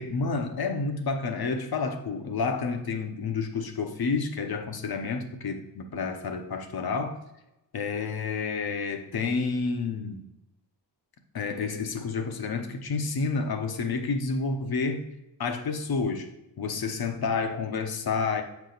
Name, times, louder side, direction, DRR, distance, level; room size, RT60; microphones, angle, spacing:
voice 1, 0.0-7.2 7.7-10.2 11.3-15.0 15.4-16.3 16.6-18.4, left 4 dB, 55° left, 6 dB, 1.0 m, -29 dB
7.6 x 4.9 x 4.0 m, 0.90 s
wide cardioid pair, 110°, 43 cm